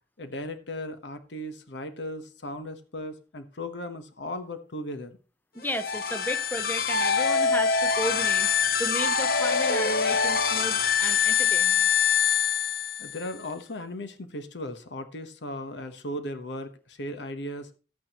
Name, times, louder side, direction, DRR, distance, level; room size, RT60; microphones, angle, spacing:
voice 1, 0.2-5.2 13.0-17.7, left 1 dB, 80° left, 1.1 m, -37 dB
voice 2, 5.5-11.9, equal, 10° left, 0.7 m, -34 dB
sound 1, 5.6-13.3, left 6 dB, 55° left, 1.0 m, -24 dB
13.0 x 9.1 x 3.0 m
head